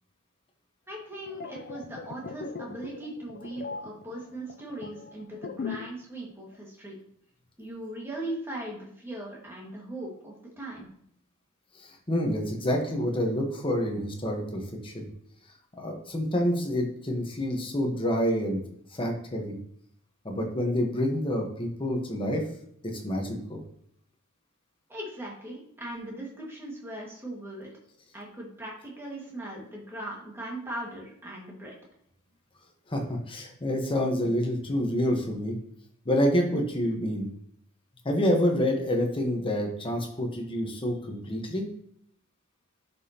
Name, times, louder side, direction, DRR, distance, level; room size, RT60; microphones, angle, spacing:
voice 1, 0.9-6.9 7.6-10.9 24.9-27.7 28.1-31.7, right 1 dB, 10° right, -3 dB, 1.9 m, -39 dB
sound 1, 1.1-6.0 6.3-6.5, left 5 dB, 45° left, 0.4 m, -40 dB
voice 2, 12.1-15.1 15.8-18.6 18.9-19.6 20.2-22.4 22.8-23.6 32.9-35.6 36.0-37.3 38.0-41.7, equal, 25° left, 2 dB, 1.2 m, -28 dB
11.0 x 5.3 x 2.9 m, 0.69 s
head